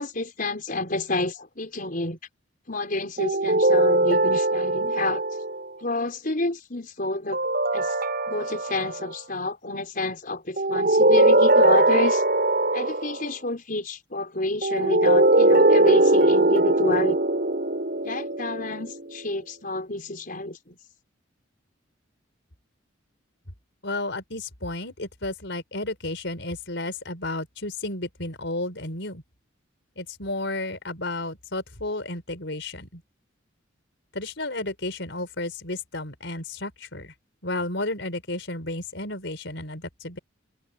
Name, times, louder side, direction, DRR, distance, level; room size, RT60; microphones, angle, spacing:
voice 1, 0.0-2.2 2.7-5.2 5.8-7.4 7.7-7.9 8.3-12.2 12.7-17.2 18.0-20.8, left 2 dB, 45° left, 5.5 m, -29 dB
sound 1, 3.2-5.6 7.3-9.2 10.6-13.3 14.6-19.1, right 2 dB, 50° right, 7.5 m, -20 dB
voice 2, 23.8-29.2 30.0-33.0 34.1-37.1 37.4-40.2, left 2 dB, 65° left, 5.4 m, -32 dB
open air
head